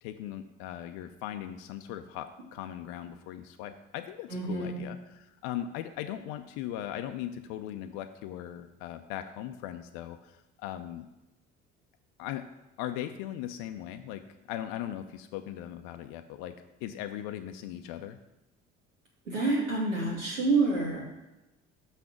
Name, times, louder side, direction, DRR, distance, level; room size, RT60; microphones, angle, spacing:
voice 1, 0.0-11.1 12.2-12.5 12.8-18.2, left 11 dB, 60° left, 7 dB, 0.6 m, -39 dB
voice 2, 4.3-4.8 19.3-21.1, right 3 dB, 80° right, -3 dB, 2.3 m, -28 dB
6.0 x 5.6 x 5.9 m, 0.98 s
figure-of-eight pair, 55°, 38 cm